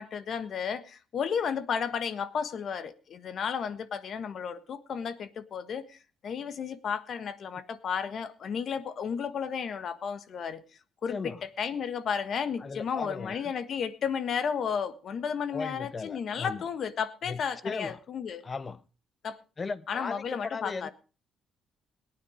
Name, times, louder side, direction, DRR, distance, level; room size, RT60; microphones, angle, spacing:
voice 1, 0.0-10.6 11.0-18.4 19.2-19.4 19.9-20.9, left 7 dB, 60° left, 1.4 m, -33 dB
voice 2, 11.1-11.4 12.6-13.5 15.5-16.6 17.3-18.0 18.4-18.8 19.6-20.9, left 4 dB, 35° left, 0.9 m, -37 dB
18.0 x 9.5 x 5.0 m
cardioid pair, 90°, 0 cm